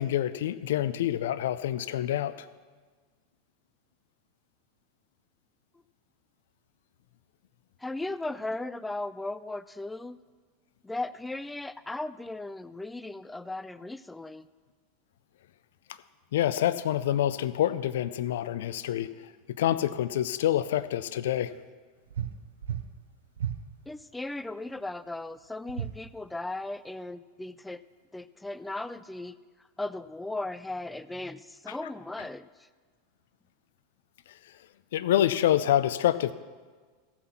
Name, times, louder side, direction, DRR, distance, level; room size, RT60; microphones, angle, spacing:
voice 1, 0.0-2.5 16.3-19.1 19.6-21.5 34.9-36.3, left 12 dB, 65° left, 15 dB, 0.4 m, -27 dB
voice 2, 7.8-10.2 10.8-14.5 23.9-27.8 28.1-29.4 29.8-32.7, left 2 dB, 10° left, 15 dB, 0.4 m, -37 dB
sound 1, 22.1-22.4 22.6-22.9 23.4-23.6 25.7-26.0, right 9 dB, 75° right, 0.6 m, -32 dB
15.5 x 5.9 x 5.8 m, 1.5 s
figure-of-eight pair, 90°, 0 cm